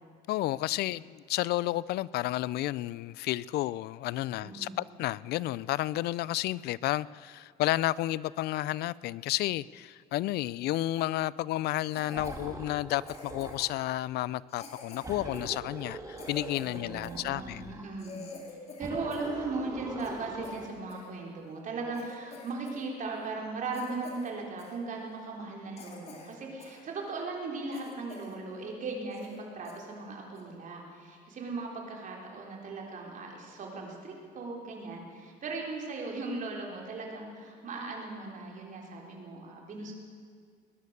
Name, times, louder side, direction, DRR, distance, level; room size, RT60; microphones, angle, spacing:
voice 1, 0.3-4.7 5.0-17.7, left 16 dB, 70° left, 0.4 m, -31 dB
voice 2, 4.4-4.8 16.6-18.2 18.8-39.9, right 3 dB, 50° right, 3.7 m, -38 dB
Cough, 11.9-12.5 13.1-13.8 14.5-17.2 17.7-17.8 18.0-19.4 19.7-21.1 21.6-21.7 21.9-22.9 23.1-23.3 23.7-24.3 24.6-24.8 25.3-25.4 25.8-26.8 27.2-27.3 27.7-28.4 28.7-28.8 29.1-29.4 29.7-29.8 30.3-30.6, left 3 dB, 40° left, 2.6 m, -47 dB
sound 1, 12.1-13.9 15.0-17.9 18.8-20.8, right 2 dB, 20° right, 1.6 m, -43 dB
20.0 x 11.0 x 6.7 m
cardioid pair, 110°, 17 cm